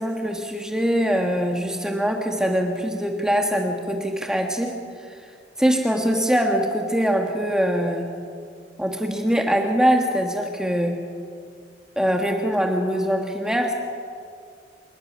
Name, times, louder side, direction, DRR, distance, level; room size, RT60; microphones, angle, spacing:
voice 1, 0.0-4.7 5.0-5.2 5.6-8.1 8.8-11.0 12.0-13.7, equal, 5° right, 2 dB, 1.5 m, -23 dB
27.0 x 13.0 x 9.6 m, 2.2 s
head